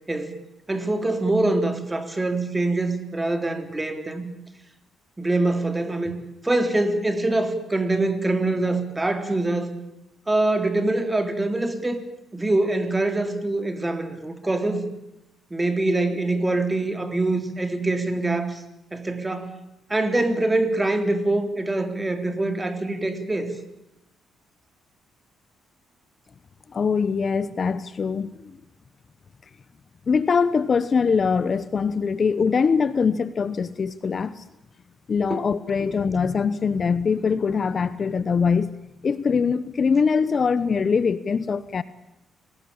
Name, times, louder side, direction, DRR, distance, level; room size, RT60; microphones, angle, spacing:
voice 1, 0.7-4.3 5.2-6.2 6.4-9.7 10.3-12.0 12.3-14.9 15.5-18.6 18.9-19.6 19.9-23.5 35.3-35.4, right 2 dB, 15° right, 8 dB, 3.6 m, -24 dB
voice 2, 26.7-28.3 30.1-34.4 35.1-38.7 39.0-41.8, left 5 dB, 40° left, 16 dB, 1.0 m, -22 dB
28.0 x 19.0 x 8.8 m, 0.86 s
cardioid pair, 90°, 0 cm